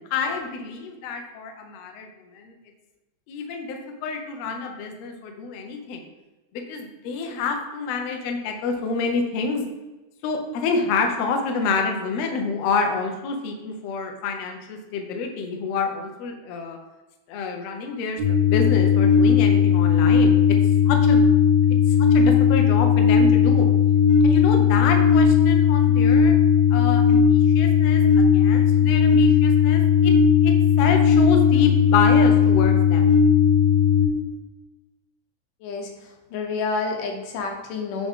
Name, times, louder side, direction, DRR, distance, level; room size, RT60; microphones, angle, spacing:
voice 1, 0.1-2.1 2.3-2.5 3.3-6.0 6.7-9.6 10.2-16.8 17.3-20.4 20.8-21.3 22.1-23.7 24.2-26.3 26.7-30.1 30.4-33.1, left 4 dB, 70° left, 4 dB, 1.7 m, -27 dB
sound 1, 18.2-34.0, left 6 dB, 35° right, 1.9 m, -17 dB
voice 2, 36.3-38.1, left 4 dB, 90° left, 2 dB, 2.6 m, -28 dB
10.0 x 3.7 x 3.6 m, 1.1 s
omnidirectional pair, 3.6 m